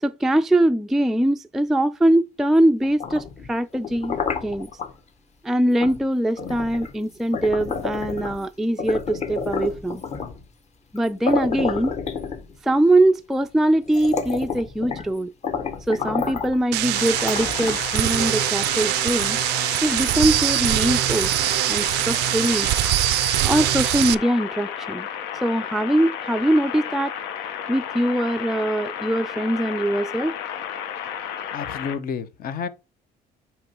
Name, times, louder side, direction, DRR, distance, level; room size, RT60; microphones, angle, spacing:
voice 1, 0.0-4.2 4.4-4.7 5.4-10.0 10.9-11.9 12.6-15.3 15.9-19.4 19.8-21.4 21.7-22.7 23.4-25.1 25.4-27.2 27.7-30.3, right 1 dB, ahead, 0.3 m, -22 dB
sound 1, 2.8-4.9 5.8-6.0 6.4-8.4 8.8-10.4 11.0-11.1 11.3-12.7 13.4-13.5 13.9-15.1 15.4-16.6 17.2-18.0, left 5 dB, 40° left, 1.3 m, -29 dB
sound 2, 16.7-24.1, right 18 dB, 90° right, 0.4 m, -23 dB
sound 3, 16.9-31.9, left 9 dB, 90° left, 0.9 m, -32 dB
voice 2, 31.5-32.7, left 6 dB, 60° left, 0.9 m, -30 dB
9.0 x 3.0 x 4.4 m
cardioid pair, 110°, 17 cm